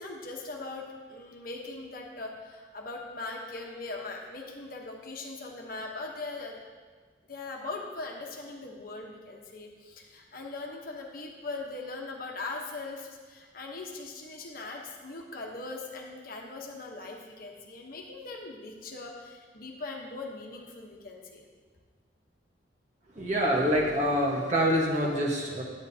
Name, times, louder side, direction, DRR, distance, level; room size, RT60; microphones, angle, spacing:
voice 1, 0.0-6.6 7.3-21.5, left 3 dB, 50° left, 0 dB, 1.0 m, -40 dB
voice 2, 23.1-25.6, equal, 40° right, -3 dB, 1.4 m, -26 dB
10.5 x 8.7 x 2.8 m, 1.5 s
head